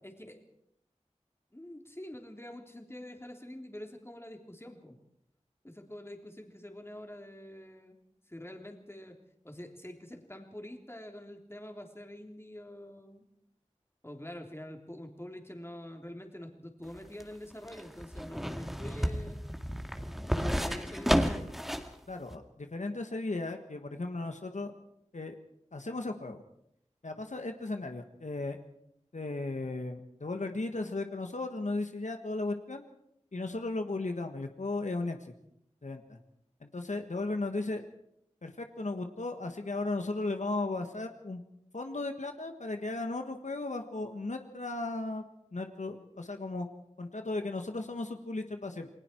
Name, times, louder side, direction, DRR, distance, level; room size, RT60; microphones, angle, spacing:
voice 1, 0.0-0.4 1.5-5.0 5.6-8.0 8.3-9.2 9.4-13.3 14.0-19.4 20.3-21.5, left 1 dB, 20° left, 3 dB, 3.2 m, -46 dB
sound 1, 16.8-21.9 22.3-22.4, equal, ahead, 2.0 m, -32 dB
voice 2, 22.1-24.7 25.1-25.4 25.7-26.4 27.0-28.6 29.1-32.8 33.3-35.3 35.8-36.2 36.6-37.8 38.4-41.4 41.7-45.2 45.5-46.7 47.0-48.9, left 2 dB, 85° left, 6 dB, 1.6 m, -36 dB
29.0 x 20.0 x 4.6 m, 0.75 s
wide cardioid pair, 50°, 12 cm